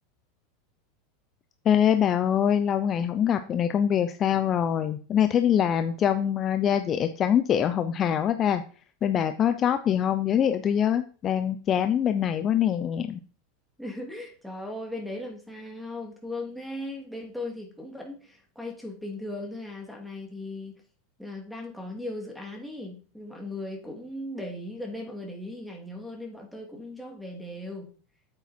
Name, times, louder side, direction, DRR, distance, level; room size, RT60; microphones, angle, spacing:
voice 1, 1.7-8.6 9.0-13.2, left 9 dB, 30° left, 9 dB, 0.7 m, -24 dB
voice 2, 13.8-20.8 21.2-27.9, left 1 dB, ahead, -1 dB, 2.7 m, -38 dB
8.7 x 8.4 x 4.4 m, 0.40 s
supercardioid pair, 140°, 0 cm